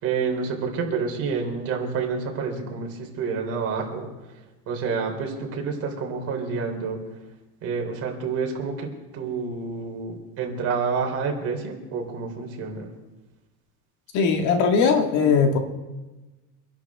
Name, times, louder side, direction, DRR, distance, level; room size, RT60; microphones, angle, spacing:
voice 1, 0.0-4.3 4.7-7.0 7.6-8.9 9.1-12.9, right 5 dB, 40° right, 3.4 m, -28 dB
voice 2, 14.1-15.6, left 5 dB, 50° left, 1.9 m, -19 dB
26.0 x 11.5 x 3.6 m
cardioid pair, 170°, 36 cm